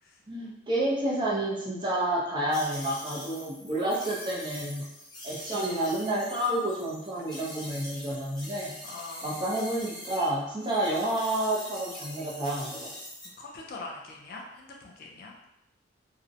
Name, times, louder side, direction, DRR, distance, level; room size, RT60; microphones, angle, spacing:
voice 1, 0.3-4.9 5.2-8.7 9.2-12.9, right 1 dB, 25° right, -4 dB, 0.4 m, -29 dB
sound 1, 2.5-10.3 10.6-13.3, left 1 dB, 20° left, 0.9 m, -43 dB
voice 2, 8.8-9.4 13.4-15.3, left 3 dB, 50° left, -1 dB, 0.4 m, -43 dB
2.5 x 2.0 x 2.5 m, 0.83 s
head